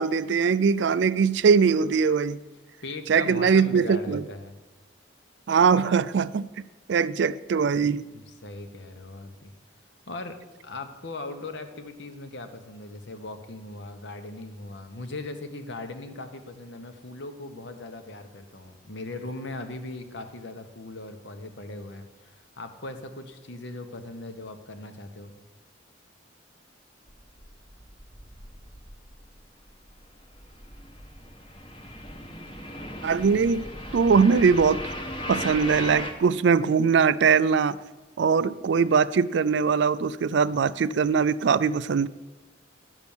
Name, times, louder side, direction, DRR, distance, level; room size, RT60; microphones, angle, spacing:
voice 1, 0.0-2.4 3.1-4.2 5.5-6.5 6.9-8.0 33.0-33.6 33.9-34.8 35.3-37.8 38.2-42.1, right 6 dB, 60° right, 0.3 m, -21 dB
voice 2, 2.8-4.6 8.1-9.5 10.1-10.4 10.6-25.3, left 2 dB, 65° left, 1.1 m, -39 dB
sound 1, 27.1-29.4 29.7-36.1, left 1 dB, 25° left, 1.1 m, -37 dB
11.0 x 6.1 x 7.1 m
head